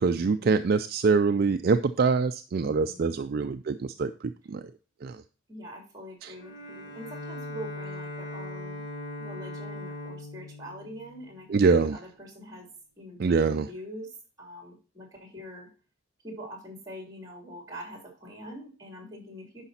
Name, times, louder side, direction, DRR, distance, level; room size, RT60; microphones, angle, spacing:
voice 1, 0.0-4.1 4.5-4.6 5.0-5.1 6.2-6.3 11.5-12.0 13.2-13.7, right 4 dB, 45° right, 9 dB, 0.3 m, -24 dB
voice 2, 2.6-3.2 5.5-8.8 9.2-11.6 11.9-12.7 13.0-14.1 14.4-15.7 16.2-19.6, equal, 15° right, 2 dB, 3.2 m, -44 dB
Bowed string instrument, 6.3-11.9, left 1 dB, 65° left, 1.3 m, -40 dB
10.0 x 5.7 x 4.1 m, 0.35 s
head